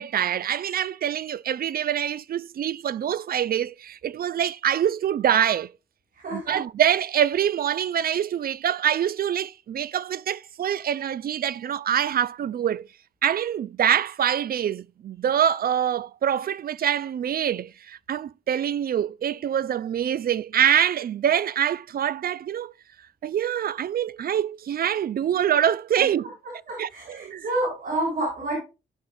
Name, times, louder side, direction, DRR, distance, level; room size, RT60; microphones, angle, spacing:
voice 1, 0.0-5.7 6.3-12.9 13.2-22.7 23.2-26.3 26.8-27.4, right 9 dB, 55° right, 0.4 m, -25 dB
voice 2, 6.1-6.6 26.0-26.1 26.7-28.6, right 1 dB, 85° right, 5.4 m, -29 dB
15.5 x 5.5 x 2.6 m
supercardioid pair, 40°, 18 cm